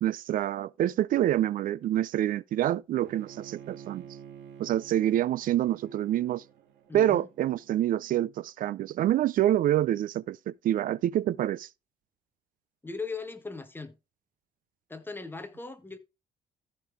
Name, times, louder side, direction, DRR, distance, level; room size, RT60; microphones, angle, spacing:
voice 1, 0.0-4.0 4.6-6.4 6.9-11.7, right 12 dB, 55° right, 0.4 m, -27 dB
Bowed string instrument, 3.0-8.1, right 8 dB, 90° right, 2.3 m, -50 dB
voice 2, 6.9-7.3 12.8-13.9 14.9-16.0, left 4 dB, 10° left, 1.4 m, -38 dB
14.5 x 5.1 x 3.5 m
cardioid pair, 110°, 17 cm